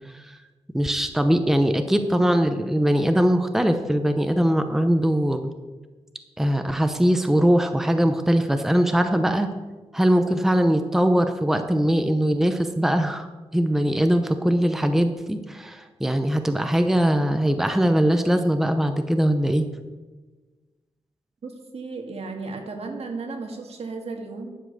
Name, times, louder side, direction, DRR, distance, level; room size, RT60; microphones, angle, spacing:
voice 1, 0.7-5.4 6.4-9.5 9.9-13.3 13.5-19.7, equal, 5° right, 7 dB, 0.7 m, -21 dB
voice 2, 21.4-24.6, right 3 dB, 70° right, 3 dB, 1.9 m, -34 dB
11.0 x 7.3 x 6.6 m, 1.3 s
wide cardioid pair, 125°, 11 cm